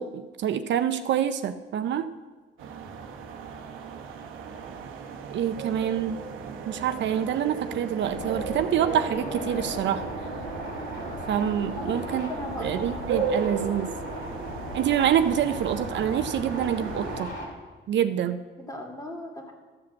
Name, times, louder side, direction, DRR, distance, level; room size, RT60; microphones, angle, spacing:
voice 1, 0.0-2.1 5.3-6.2 6.7-10.1 11.3-12.3 12.6-13.9 14.7-17.3 17.9-18.4, right 9 dB, 65° right, 10 dB, 0.5 m, -26 dB
sound 1, 2.6-17.2, right 6 dB, 85° right, 0.9 m, -36 dB
sound 2, 8.0-17.5, left 1 dB, 65° left, 3.0 m, -37 dB
voice 2, 11.8-13.5 18.6-19.5, left 1 dB, 15° left, 1 dB, 2.2 m, -38 dB
13.5 x 5.0 x 7.3 m, 1.3 s
cardioid pair, 90°, 20 cm